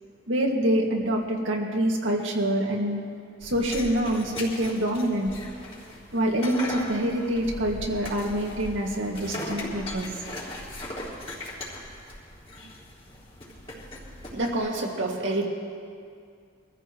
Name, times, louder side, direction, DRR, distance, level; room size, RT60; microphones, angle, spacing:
voice 1, 0.3-3.0 3.4-5.3 6.1-10.1, right 1 dB, 90° right, 0 dB, 2.0 m, -26 dB
sound 1, 3.4-14.7, left 1 dB, 30° left, 3.2 m, -39 dB
voice 2, 14.3-15.5, right 2 dB, 70° right, -1 dB, 2.2 m, -27 dB
24.0 x 14.0 x 3.1 m, 2.3 s
head